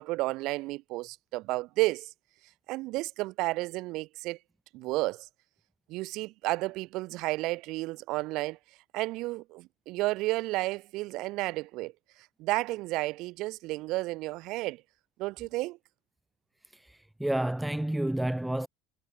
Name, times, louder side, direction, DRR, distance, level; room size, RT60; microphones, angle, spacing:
voice 1, 0.0-2.1 2.7-4.4 4.7-5.3 5.9-8.6 8.9-11.9 12.4-14.8 15.2-15.8, right 20 dB, 65° right, 7.1 m, -32 dB
voice 2, 16.9-18.7, right 1 dB, 5° right, 1.3 m, -30 dB
supercardioid pair, 120°, 0 cm